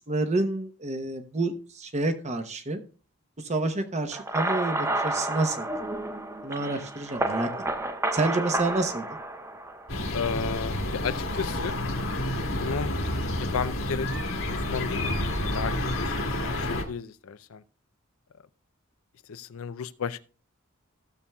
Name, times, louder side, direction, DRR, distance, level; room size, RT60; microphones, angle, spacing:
voice 1, 0.1-2.8 3.4-5.7 6.4-7.5 8.1-9.1, right 2 dB, 35° right, 0.9 m, -28 dB
sound 1, 4.1-9.9, right 2 dB, 15° right, 0.6 m, -30 dB
sound 2, 9.9-16.8, left 1 dB, 70° left, 1.6 m, -29 dB
voice 2, 10.1-11.8 12.4-12.9 13.4-14.1 14.5-17.6 19.3-20.2, left 6 dB, 85° left, 0.5 m, -33 dB
15.5 x 6.9 x 2.3 m
head